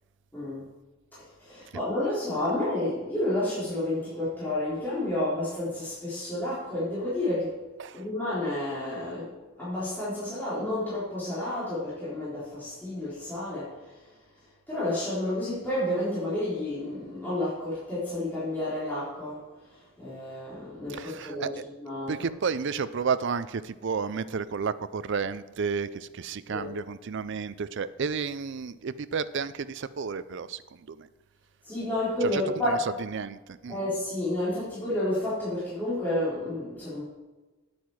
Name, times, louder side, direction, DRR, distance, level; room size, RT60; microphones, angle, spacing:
voice 1, 0.3-0.6 1.1-7.6 7.9-13.8 14.7-19.4 19.7-22.2 26.5-26.7 31.6-32.8 33.7-37.0, left 1 dB, 10° left, -11 dB, 3.6 m, -30 dB
voice 2, 20.9-21.6 22.1-31.1 32.2-33.8, right 5 dB, 60° right, 14 dB, 0.5 m, -32 dB
9.3 x 8.6 x 4.7 m, 1.2 s
head